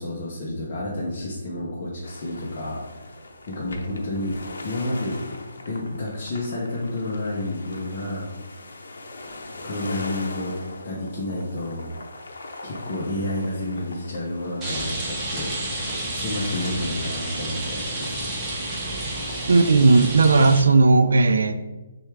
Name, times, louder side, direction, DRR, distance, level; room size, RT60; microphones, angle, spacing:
voice 1, 0.0-3.2 3.5-5.2 5.7-8.3 9.6-10.6 10.8-11.9 12.6-18.3, left 1 dB, 30° left, -6 dB, 0.6 m, -30 dB
sound 1, 2.0-16.7, left 2 dB, 90° left, 0.6 m, -41 dB
Rain, 14.6-20.6, right 1 dB, 10° right, 0.6 m, -30 dB
voice 2, 19.5-21.7, right 3 dB, 85° right, 9 dB, 0.3 m, -16 dB
6.2 x 2.3 x 3.3 m, 1.2 s
hypercardioid pair, 175°, 0 cm